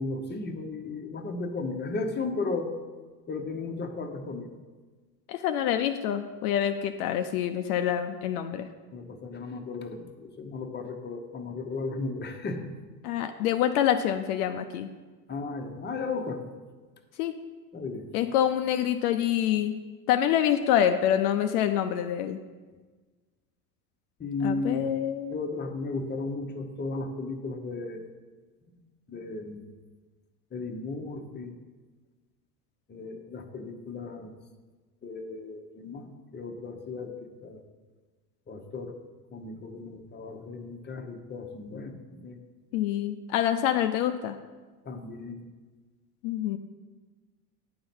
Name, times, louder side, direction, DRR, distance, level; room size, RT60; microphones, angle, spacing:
voice 1, 0.0-2.7 3.3-4.6 8.9-12.7 15.3-16.4 17.7-18.1 24.2-24.9 25.3-28.1 29.1-29.7 30.5-31.6 32.9-34.3 35.0-37.7 38.5-39.0 39.3-42.4 44.8-45.4, left 3 dB, 20° left, 4 dB, 0.9 m, -35 dB
voice 2, 5.3-8.7 13.0-14.9 17.2-17.3 18.1-19.8 20.1-22.4 24.4-25.3 42.7-44.4 46.2-46.6, left 10 dB, 65° left, 7 dB, 0.6 m, -26 dB
9.4 x 3.9 x 6.0 m, 1.3 s
hypercardioid pair, 75°, 49 cm